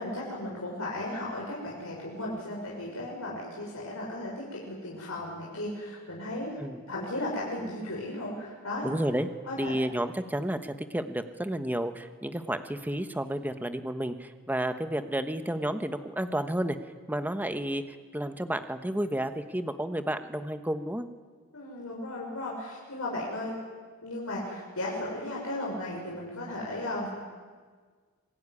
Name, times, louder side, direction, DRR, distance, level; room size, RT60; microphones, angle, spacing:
voice 1, 0.0-6.5 6.9-8.9 9.4-9.8 21.5-23.5 24.0-27.1, left 1 dB, 70° left, -4 dB, 6.6 m, -35 dB
voice 2, 8.8-9.3 9.6-16.8 17.1-21.1, right 1 dB, 10° right, 9 dB, 1.2 m, -31 dB
26.5 x 21.0 x 9.9 m, 1.5 s
head